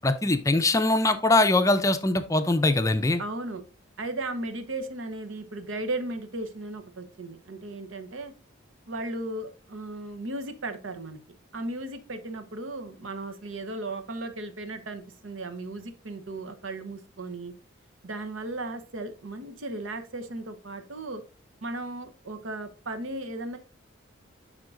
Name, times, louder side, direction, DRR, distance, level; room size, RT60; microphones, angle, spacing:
voice 1, 0.0-3.2, left 2 dB, 15° left, 9 dB, 0.4 m, -22 dB
voice 2, 3.2-3.6 4.0-8.3 8.9-11.2 11.5-17.5 18.0-21.2 21.6-23.6, right 2 dB, 85° right, 8 dB, 0.9 m, -36 dB
11.0 x 3.7 x 2.5 m, 0.38 s
head